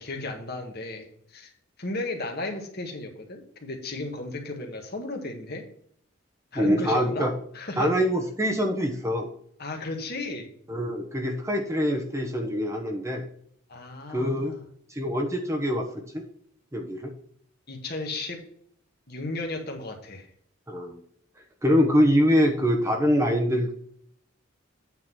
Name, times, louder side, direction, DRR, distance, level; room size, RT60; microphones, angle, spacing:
voice 1, 0.0-1.5 1.8-5.6 6.5-7.9 9.6-10.5 13.7-14.6 17.7-18.4 19.1-20.3, left 2 dB, 50° left, 2 dB, 1.7 m, -34 dB
voice 2, 6.5-7.3 7.8-9.3 10.7-13.2 14.1-14.5 14.9-16.3 16.7-17.1 20.7-21.0 21.6-23.7, equal, 15° right, 3 dB, 0.9 m, -24 dB
9.0 x 3.9 x 6.2 m, 0.62 s
head